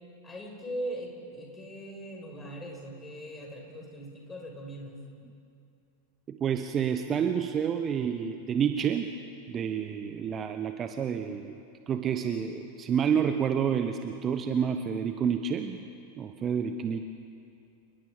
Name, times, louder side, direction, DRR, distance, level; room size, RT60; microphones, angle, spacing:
voice 1, 0.2-5.0, right 1 dB, 15° left, 0 dB, 5.6 m, -40 dB
voice 2, 6.3-9.1 9.5-11.6 11.9-15.8 16.2-17.1, right 7 dB, 25° right, 8 dB, 0.9 m, -29 dB
29.0 x 19.5 x 5.1 m, 2.5 s
figure-of-eight pair, 90°, 0 cm